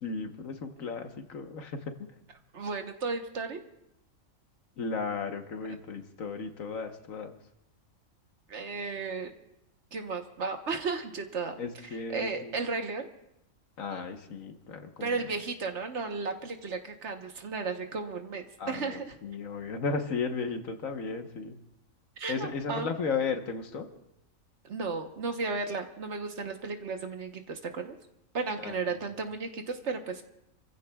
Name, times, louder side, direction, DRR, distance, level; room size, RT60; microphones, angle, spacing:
voice 1, 0.0-2.1 4.8-7.4 11.6-12.5 13.8-15.2 18.6-21.6 22.3-23.9 28.6-29.0, left 4 dB, 75° left, 6 dB, 1.5 m, -35 dB
voice 2, 2.5-3.6 8.5-9.3 9.9-11.5 12.1-13.1 15.0-19.1 22.2-22.9 24.6-27.9 28.3-30.2, right 4 dB, 60° right, 5 dB, 1.4 m, -34 dB
29.5 x 15.0 x 2.3 m, 0.83 s
omnidirectional pair, 1.4 m